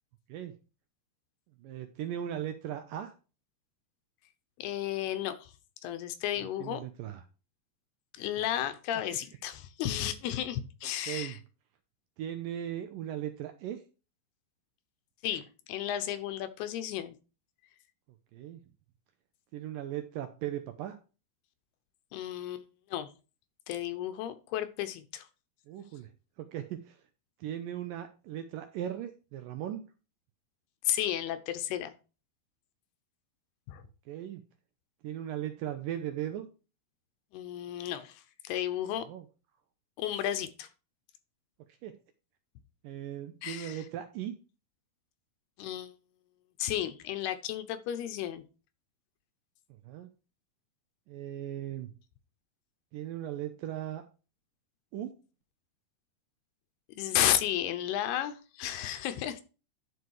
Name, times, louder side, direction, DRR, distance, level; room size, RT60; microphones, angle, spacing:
voice 1, 1.6-3.1 6.4-7.2 11.1-11.4 12.2-13.8 18.3-18.6 19.5-21.0 25.7-26.1 26.4-27.0 27.4-29.9 34.1-34.4 35.0-36.5 39.1-39.3 41.8-41.9 42.8-44.3 49.8-50.1 51.1-51.9 52.9-54.0 54.9-55.2, right 11 dB, 80° right, 8 dB, 2.1 m, -38 dB
voice 2, 4.6-5.5 5.8-6.8 8.1-11.4 15.2-17.2 22.1-22.7 22.9-23.1 23.7-25.3 30.9-31.9 33.7-33.8 37.3-39.1 40.0-40.7 43.4-43.8 45.6-45.9 46.6-48.4 57.0-59.4, left 11 dB, 80° left, 10 dB, 2.9 m, -33 dB
11.5 x 4.8 x 4.7 m, 0.33 s
omnidirectional pair, 4.6 m